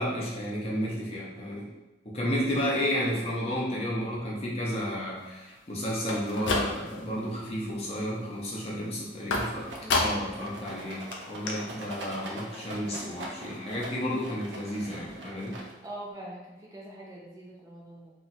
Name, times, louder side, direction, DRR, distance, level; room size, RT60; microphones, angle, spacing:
voice 1, 0.0-1.7 2.0-9.7 10.0-11.0 11.3-15.6, equal, 35° left, -4 dB, 0.7 m, -32 dB
sound 1, 6.0-7.1 7.5-8.0 9.3-10.4 10.8-10.9 11.1-11.2 11.5-11.6, left 2 dB, 75° left, 0.5 m, -30 dB
Rattle, 9.3-16.0, right 1 dB, 75° right, 0.6 m, -43 dB
voice 2, 9.8-10.1 15.8-18.1, right 1 dB, 20° right, -4 dB, 0.5 m, -43 dB
2.8 x 2.3 x 3.9 m, 1.1 s
head